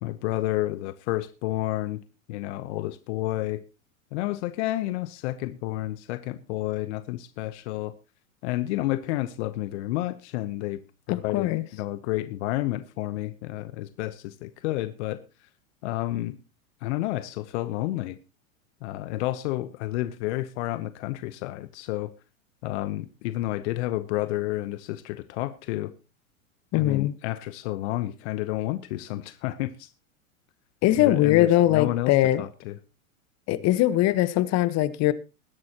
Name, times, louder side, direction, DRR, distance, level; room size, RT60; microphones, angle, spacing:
voice 1, 0.0-2.0 2.3-3.6 4.1-7.9 8.4-10.8 11.1-15.2 15.8-16.4 16.8-18.2 18.8-22.1 22.6-25.9 26.8-29.9 31.0-32.7, left 16 dB, 55° left, 1.0 m, -30 dB
voice 2, 11.1-11.6 26.7-27.2 30.8-32.4 33.5-35.1, left 14 dB, 40° left, 1.3 m, -21 dB
20.5 x 10.5 x 2.9 m
hypercardioid pair, 105°, 41 cm